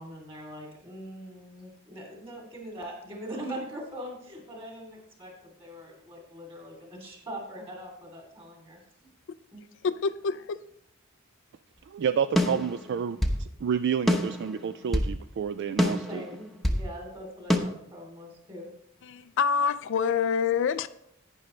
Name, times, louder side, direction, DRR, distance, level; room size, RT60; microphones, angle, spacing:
voice 1, 0.0-9.1 9.5-9.6 16.1-18.7, equal, 25° right, 0 dB, 3.0 m, -42 dB
voice 2, 9.8-10.6 19.0-20.9, left 6 dB, 60° left, 13 dB, 0.4 m, -26 dB
voice 3, 11.9-16.2, right 7 dB, 55° right, 12 dB, 0.3 m, -30 dB
sound 1, 12.4-13.4 14.1-15.1 15.8-16.9 17.5-17.6, left 1 dB, ahead, 0.9 m, -26 dB
11.5 x 9.5 x 3.2 m, 0.74 s
head